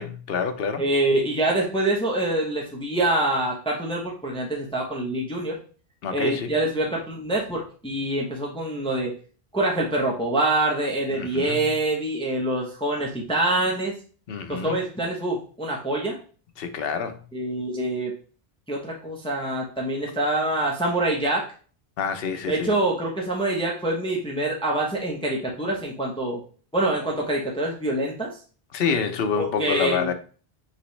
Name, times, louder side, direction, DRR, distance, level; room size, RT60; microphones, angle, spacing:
voice 1, 0.0-0.8 6.0-6.5 11.1-11.6 14.3-14.8 16.6-17.2 22.0-22.7 28.7-30.1, left 6 dB, 70° left, 0.8 m, -27 dB
voice 2, 0.8-5.6 6.1-9.1 9.5-13.9 14.5-16.2 17.3-18.1 18.7-21.5 22.5-26.4 26.7-28.3 29.4-30.1, right 1 dB, 5° left, 0.8 m, -25 dB
5.5 x 3.0 x 3.2 m
omnidirectional pair, 1.1 m